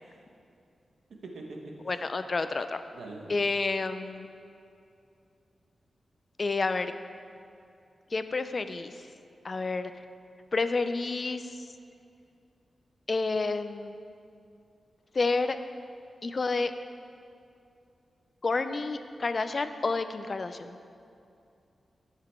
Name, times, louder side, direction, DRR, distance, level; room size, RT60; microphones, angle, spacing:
voice 1, 1.3-2.0 2.9-3.4, right 2 dB, 80° right, 0 dB, 1.1 m, -43 dB
voice 2, 1.9-2.8 3.3-4.3 6.4-6.9 8.1-8.9 9.4-9.9 10.5-11.4 13.1-14.0 15.1-15.6 16.2-16.7 18.4-20.8, left 3 dB, 40° left, 10 dB, 0.4 m, -29 dB
12.5 x 5.7 x 3.6 m, 2.5 s
wide cardioid pair, 130°, 0 cm